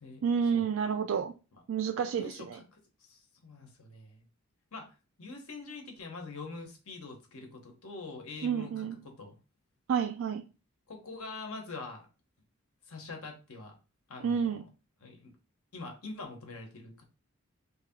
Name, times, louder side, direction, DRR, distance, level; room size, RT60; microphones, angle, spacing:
voice 1, 0.2-1.3 1.7-2.6 8.4-9.0 9.9-10.4 14.2-14.6, right 7 dB, 65° right, 0.3 m, -30 dB
voice 2, 2.2-4.2 4.7-9.3 10.9-12.1 12.9-13.7 14.1-14.5 15.0-15.3 15.7-17.0, left 3 dB, 80° left, 1.1 m, -44 dB
3.2 x 2.8 x 3.5 m
head